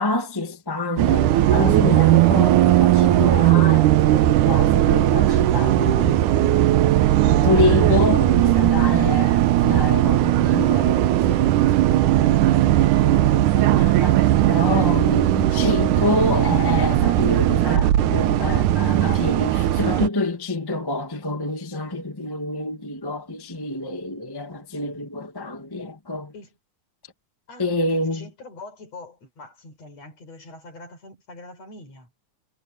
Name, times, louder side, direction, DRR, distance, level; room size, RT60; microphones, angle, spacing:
voice 1, 0.0-6.3 6.7-6.9 7.4-26.3 27.6-28.3, left 2 dB, 10° left, 1.3 m, -27 dB
Bus, 1.0-20.1, right 14 dB, 85° right, 2.4 m, -18 dB
voice 2, 2.5-3.4 7.2-7.7 26.3-26.5 27.5-32.1, left 2 dB, 55° left, 6.8 m, -43 dB
omnidirectional pair, 3.5 m